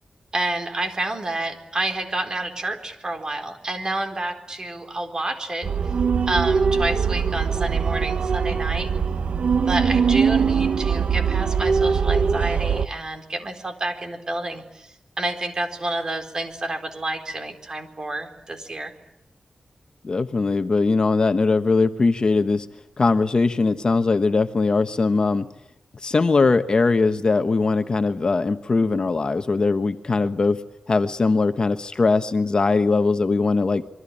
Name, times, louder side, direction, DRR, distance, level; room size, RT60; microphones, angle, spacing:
voice 1, 0.3-5.7 6.3-8.9 9.6-18.9, right 2 dB, 35° right, 7 dB, 4.2 m, -29 dB
sound 1, 5.6-12.9, right 6 dB, 75° right, 1.1 m, -21 dB
voice 2, 20.0-22.7 23.0-25.5 26.0-30.6 30.9-33.8, left 3 dB, 40° left, 9 dB, 1.3 m, -20 dB
27.0 x 24.0 x 8.6 m, 0.89 s
wide cardioid pair, 130°, 2 cm